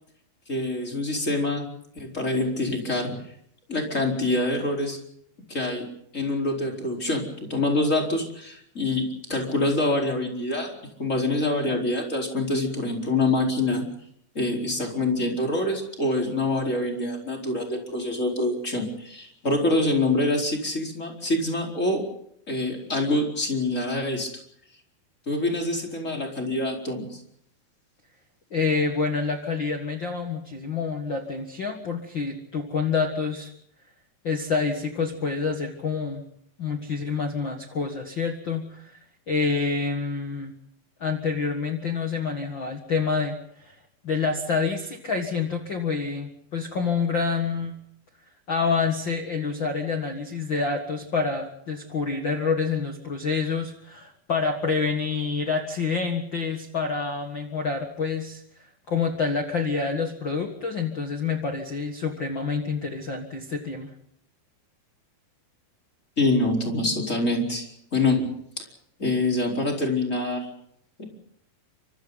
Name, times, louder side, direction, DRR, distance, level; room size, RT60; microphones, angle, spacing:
voice 1, 0.5-1.6 1.9-3.1 3.7-5.0 5.5-10.7 11.0-13.8 14.3-22.1 22.5-24.3 25.3-27.2 66.2-68.3 68.6-68.7 69.0-70.5 71.0-71.1, left 2 dB, 20° left, 0 dB, 4.4 m, -25 dB
voice 2, 28.5-33.5 34.2-36.2 36.6-39.0 39.3-40.5 41.0-43.7 44.0-47.8 48.5-58.4 58.9-63.9, left 4 dB, 45° left, 3 dB, 1.7 m, -27 dB
29.0 x 25.5 x 4.0 m, 0.68 s
omnidirectional pair, 4.3 m